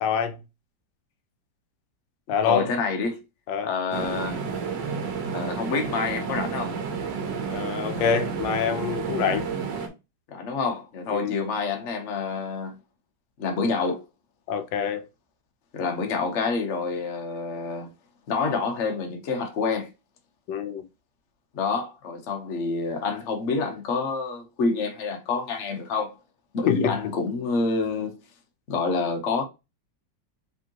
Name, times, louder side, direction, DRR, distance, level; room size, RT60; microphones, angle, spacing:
voice 1, 0.0-0.4 2.3-2.7 3.5-3.7 7.5-9.5 11.1-11.3 14.5-15.0 20.5-20.8 26.7-26.9, left 7 dB, 85° left, 1.4 m, -25 dB
voice 2, 2.4-3.2 3.6-4.4 5.3-6.8 10.3-12.7 13.4-14.0 15.7-17.9 18.3-19.9 21.5-26.1 26.5-28.2 28.7-29.4, left 4 dB, 50° left, 1.1 m, -27 dB
sound 1, 3.9-9.9, right 5 dB, 75° right, 1.5 m, -31 dB
5.0 x 3.6 x 2.9 m
omnidirectional pair, 2.0 m